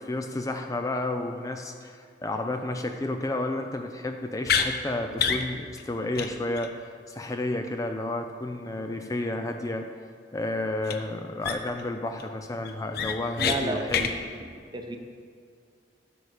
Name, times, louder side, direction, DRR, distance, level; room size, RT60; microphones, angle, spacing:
voice 1, 0.0-9.9 10.3-14.1, left 2 dB, 20° left, 5 dB, 0.4 m, -31 dB
sound 1, 4.4-4.7 5.2-5.4 5.8-5.9 6.2-6.3 6.6-6.7 10.8-11.0 11.4-11.8 12.2-12.3 12.6-13.6 13.9-14.1, left 7 dB, 60° left, 0.6 m, -26 dB
voice 2, 13.4-15.0, right 2 dB, 25° right, 4 dB, 0.8 m, -33 dB
12.0 x 4.9 x 6.7 m, 2.1 s
head